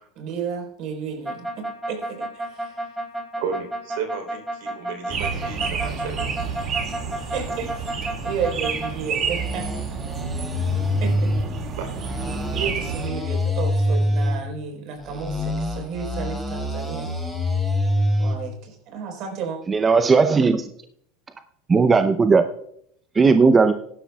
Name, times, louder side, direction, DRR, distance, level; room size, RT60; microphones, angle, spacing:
voice 1, 0.1-2.9 7.3-10.0 11.0-11.6 12.5-17.1 18.2-19.6, right 6 dB, 55° right, 3 dB, 4.3 m, -32 dB
sound 1, 1.2-8.9 9.2-11.4 11.9-14.4 15.0-18.4, left 1 dB, 5° right, 3.2 m, -26 dB
voice 2, 3.4-6.3 11.8-11.9, right 6 dB, 75° right, 3 dB, 3.4 m, -33 dB
sound 2, 5.1-13.1, right 6 dB, 40° right, 2.3 m, -30 dB
voice 3, 19.7-20.7 21.7-22.4 23.1-23.7, right 4 dB, 20° right, 9 dB, 0.6 m, -16 dB
16.5 x 11.5 x 2.3 m, 0.69 s
supercardioid pair, 110°, 0 cm